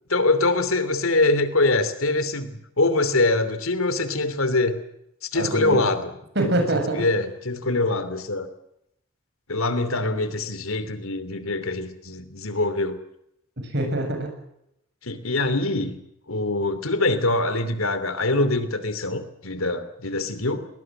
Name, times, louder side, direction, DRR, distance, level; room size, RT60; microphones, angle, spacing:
voice 1, 0.1-4.8 5.2-6.1 6.9-8.5 9.5-13.0 15.0-16.0 16.3-20.7, left 2 dB, 80° left, 12 dB, 2.9 m, -24 dB
voice 2, 5.3-5.8 6.4-7.2 7.7-7.8 13.6-14.4, right 1 dB, 55° right, 4 dB, 7.3 m, -25 dB
21.5 x 20.0 x 7.8 m, 0.79 s
head